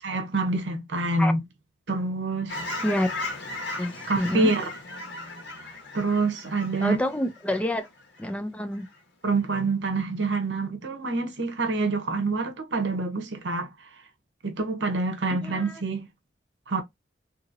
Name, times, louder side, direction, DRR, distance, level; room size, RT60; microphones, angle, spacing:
voice 1, 0.0-1.4 1.9-2.6 3.7-4.7 5.9-7.0 9.2-13.7 14.4-16.1 16.7-16.8, right 3 dB, 75° right, 0.8 m, -27 dB
Fowl / Chirp tweet, 2.5-8.3 8.7-9.0, left 2 dB, 80° left, 1.2 m, -37 dB
voice 2, 2.8-3.1 3.8-4.5 6.8-7.9 8.2-8.9 15.4-15.7, left 1 dB, 5° left, 0.4 m, -27 dB
2.8 x 2.7 x 2.5 m
head